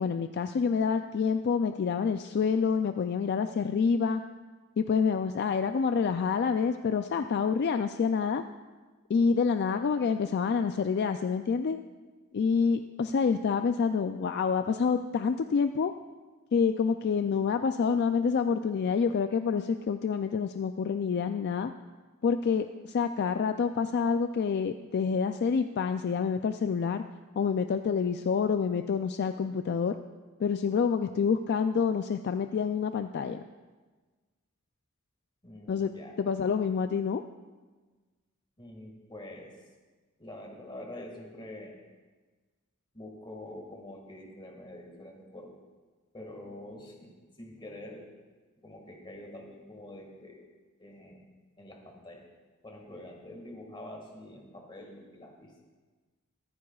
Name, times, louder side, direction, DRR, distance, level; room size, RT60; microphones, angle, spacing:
voice 1, 0.0-4.2 4.8-8.4 9.1-11.8 12.3-15.9 16.5-21.7 22.2-27.0 27.4-30.0 30.4-33.4 35.7-35.9 36.2-37.2, left 6 dB, 50° left, 8 dB, 0.3 m, -27 dB
voice 2, 35.4-36.1 36.4-36.5 38.6-39.5 40.2-41.8 42.9-45.6 46.1-47.1 47.4-48.1 48.6-50.4 50.8-51.3 51.6-52.3 52.6-55.5, left 1 dB, 25° left, 1 dB, 1.8 m, -46 dB
24.5 x 9.6 x 2.4 m, 1.3 s
head